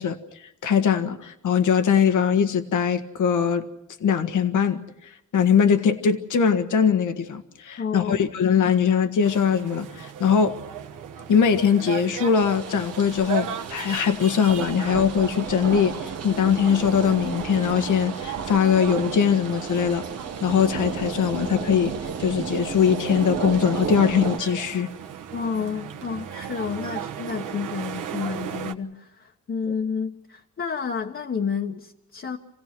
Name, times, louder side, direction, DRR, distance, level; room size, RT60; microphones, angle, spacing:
voice 1, 0.0-3.6 4.0-10.5 11.3-20.0 20.4-24.9, left 7 dB, 75° left, 1.6 m, -21 dB
voice 2, 7.8-8.3 25.3-32.4, left 6 dB, 40° left, 1.3 m, -30 dB
sound 1, 9.2-28.7, right 9 dB, 80° right, 1.3 m, -37 dB
sound 2, 12.3-24.4, right 6 dB, 55° right, 1.2 m, -33 dB
28.0 x 17.0 x 6.1 m
cardioid pair, 110°, 31 cm